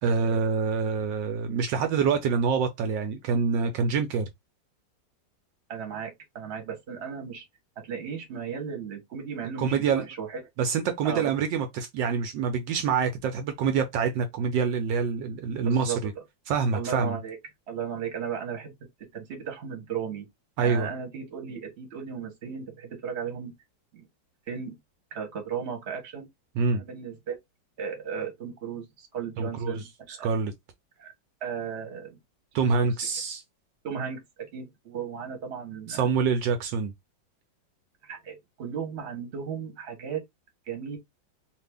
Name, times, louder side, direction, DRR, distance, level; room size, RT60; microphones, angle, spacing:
voice 1, 0.0-4.3 9.6-10.1 10.6-16.1 16.5-17.2 20.6-20.9 26.6-26.8 29.4-29.8 30.2-30.5 32.5-33.4 35.9-36.9, right 5 dB, 80° right, 1.2 m, -26 dB
voice 2, 5.7-7.4 7.8-10.4 11.0-11.3 15.6-16.2 16.7-17.4 17.7-18.7 19.1-20.3 20.6-23.5 23.9-24.1 24.5-24.7 25.1-26.3 26.8-27.4 27.8-30.3 31.0-31.1 31.4-32.2 32.6-32.7 33.8-36.1 38.0-40.2 40.7-41.0, right 7 dB, 40° right, 1.1 m, -35 dB
2.8 x 2.6 x 3.3 m
omnidirectional pair, 2.1 m